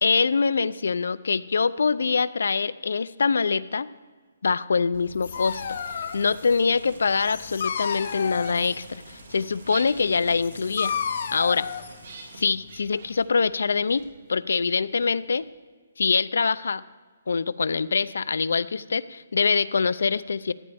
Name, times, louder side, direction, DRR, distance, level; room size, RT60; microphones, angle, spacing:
voice 1, 0.0-3.9 4.4-5.8 6.1-11.0 11.3-11.7 12.4-15.5 16.0-16.8 17.3-20.5, left 5 dB, 85° left, 17 dB, 0.4 m, -24 dB
Dog, 4.9-12.8, left 7 dB, 45° left, 0.7 m, -33 dB
sound 1, 5.2-12.5, right 3 dB, 70° right, 2.0 m, -49 dB
sound 2, 8.1-15.5, right 3 dB, 50° right, 1.8 m, -48 dB
15.0 x 9.4 x 3.5 m, 1.4 s
hypercardioid pair, 175°, 0 cm